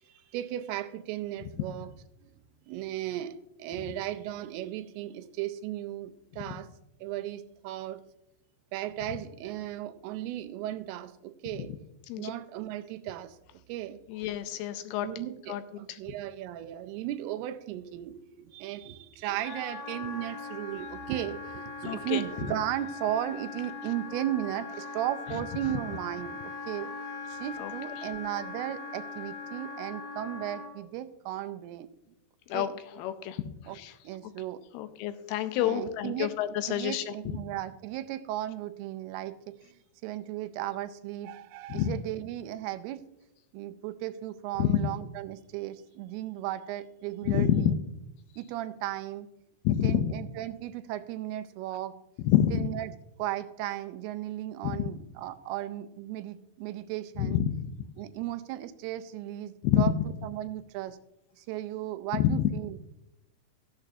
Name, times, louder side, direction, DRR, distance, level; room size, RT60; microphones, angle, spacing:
voice 1, 0.0-1.9 2.2-2.3 2.7-6.7 7.0-8.0 8.7-11.7 12.2-14.0 15.0-26.9 27.3-31.9 32.5-32.8 33.7-33.8 34.0-34.6 35.6-36.3 36.7-43.0 43.5-47.8 48.4-49.3 49.8-52.0 52.5-52.9 53.2-57.4 58.0-60.0 60.2-61.0 61.4-62.8, right 13 dB, 85° right, 10 dB, 2.6 m, -36 dB
voice 2, 14.1-15.1 15.5-15.6 21.8-22.2 27.6-27.7 32.5-32.7 33.0-33.4 33.8-33.9 34.7-37.0 41.7-41.9 44.6-44.8 47.3-47.6 49.6-50.1 52.2-52.6 57.2-57.6 59.6-59.9 62.2-62.5, left 11 dB, 80° left, 10 dB, 2.5 m, -27 dB
Wind instrument woodwind instrument, 19.4-30.7, left 4 dB, 65° left, 4.0 m, -40 dB
13.5 x 10.5 x 2.7 m, 0.88 s
omnidirectional pair, 4.6 m